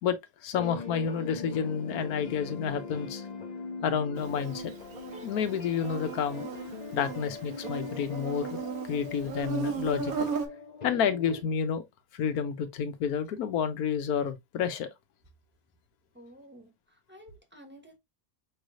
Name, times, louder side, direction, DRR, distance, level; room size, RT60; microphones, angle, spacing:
voice 1, 0.0-3.2 3.8-4.7 5.2-6.5 6.9-8.6 8.9-10.3 10.8-11.8 12.1-14.9, left 7 dB, 90° left, 1.3 m, -30 dB
sound 1, 0.5-11.4, left 4 dB, 40° left, 0.6 m, -41 dB
Insect, 4.2-10.5, right 6 dB, 75° right, 1.4 m, -37 dB
voice 2, 16.1-18.0, equal, 10° right, 1.1 m, -52 dB
5.3 x 3.2 x 2.5 m
omnidirectional pair, 1.5 m